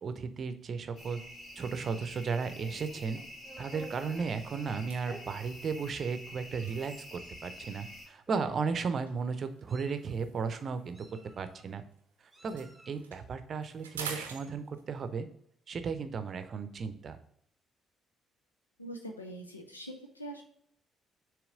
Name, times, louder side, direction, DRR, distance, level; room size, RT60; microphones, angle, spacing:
voice 1, 0.0-1.2 1.6-3.2 3.6-11.0 11.4-11.8 12.4-15.3 15.7-17.2, right 5 dB, 45° right, 10 dB, 0.6 m, -35 dB
sound 1, 1.0-8.1, left 1 dB, 45° left, 1.9 m, -48 dB
Meow, 2.7-4.4 5.0-5.2 6.1-6.2 6.6-6.8 7.8-7.9 8.3-8.8 9.4-10.1 10.9-11.7 12.3-13.0, right 1 dB, 10° right, 1.0 m, -51 dB
sound 2, 3.3-3.4 3.6-7.6 8.4-12.0 12.3-15.1, right 6 dB, 80° right, 0.6 m, -48 dB
voice 2, 18.8-20.4, right 1 dB, 90° left, 3 dB, 0.6 m, -43 dB
7.0 x 3.0 x 5.0 m, 0.68 s
figure-of-eight pair, 45°, 0 cm